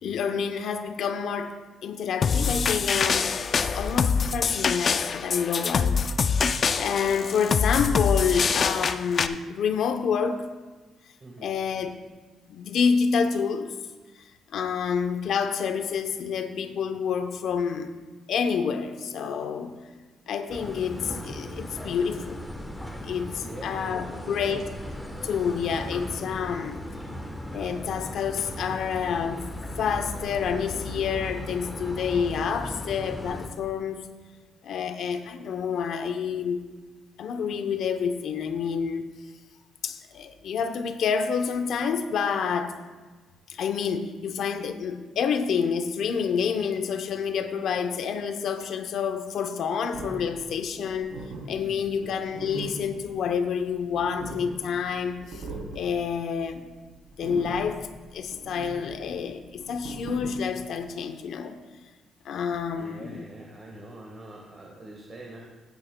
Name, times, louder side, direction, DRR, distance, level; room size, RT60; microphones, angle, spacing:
voice 1, 0.0-3.3 3.7-6.0 6.2-10.5 11.4-12.0 12.5-13.8 14.5-17.9 18.3-19.8 20.3-22.5 23.0-24.7 25.2-26.8 27.5-29.4 29.8-34.1 34.6-36.6 37.2-39.1 39.8-42.7 43.5-51.1 51.5-55.4 55.7-56.7 57.2-57.9 58.1-61.6 62.2-63.2, left 6 dB, 65° left, 7 dB, 0.7 m, -28 dB
sound 1, 2.2-9.3, left 5 dB, 40° left, 0.4 m, -25 dB
voice 2, 11.2-11.5 23.4-24.6 51.6-52.2 62.7-65.4, right 2 dB, 30° right, -2 dB, 1.5 m, -44 dB
sound 2, 20.5-33.5, left 1 dB, 5° left, 1.1 m, -37 dB
sound 3, 49.9-60.9, right 3 dB, 80° right, 2.8 m, -40 dB
15.5 x 9.4 x 2.2 m, 1.3 s
cardioid pair, 125°, 0 cm